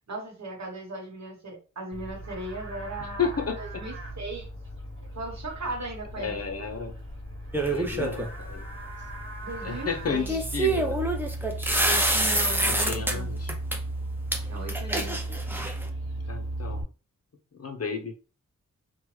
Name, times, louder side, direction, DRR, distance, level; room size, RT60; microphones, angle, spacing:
voice 1, 0.1-4.5 5.1-6.4 9.4-10.4 11.8-13.3 14.5-15.2, right 2 dB, 60° right, 1 dB, 1.1 m, -37 dB
Livestock farm animals working animals, 1.9-16.8, right 1 dB, 40° right, 1.2 m, -36 dB
voice 2, 3.2-3.5 6.2-6.9 7.7-8.9 9.6-11.0 12.7-13.5 16.3-16.8 17.6-18.1, left 5 dB, 50° left, 4 dB, 0.7 m, -32 dB
sound 1, 7.5-8.3 10.3-13.1 13.5-13.8 14.3-14.4 14.7-15.9, right 1 dB, 5° right, 0.6 m, -26 dB
2.9 x 2.3 x 3.1 m, 0.34 s
wide cardioid pair, 65°, 32 cm